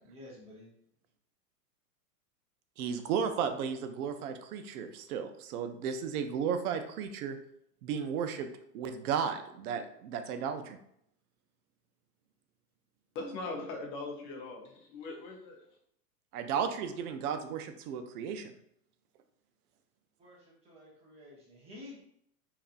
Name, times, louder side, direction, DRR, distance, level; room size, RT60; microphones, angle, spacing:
voice 1, 0.0-0.7 20.2-22.0, left 2 dB, 15° right, -4 dB, 0.6 m, -51 dB
voice 2, 2.8-7.4 7.8-8.5 8.7-10.8 16.3-18.5, right 7 dB, 70° right, 8 dB, 0.5 m, -34 dB
voice 3, 13.1-15.6, left 3 dB, 35° left, 1 dB, 0.5 m, -40 dB
2.7 x 2.4 x 2.4 m, 0.71 s
hypercardioid pair, 130°, 47 cm